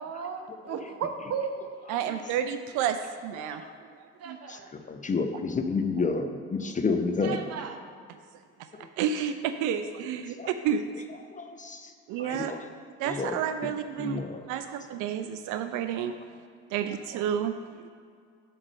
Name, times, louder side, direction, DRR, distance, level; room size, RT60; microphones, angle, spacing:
voice 1, 0.0-1.7 4.2-4.7 7.2-7.8 14.4-14.5, right 6 dB, 45° right, 6 dB, 0.8 m, -35 dB
voice 2, 1.9-3.6 4.0-4.4 8.6-10.9 12.1-12.5 13.0-14.2 14.5-16.2 16.7-17.9, right 8 dB, 60° right, 9 dB, 0.5 m, -30 dB
voice 3, 3.4-3.7 4.5-7.4 8.8-8.9 10.4-10.5 11.3-11.9 12.2-12.6 13.1-13.4 14.0-14.4, left 4 dB, 20° left, 6 dB, 0.6 m, -30 dB
7.2 x 3.3 x 6.3 m, 2.1 s
hypercardioid pair, 55°, 35 cm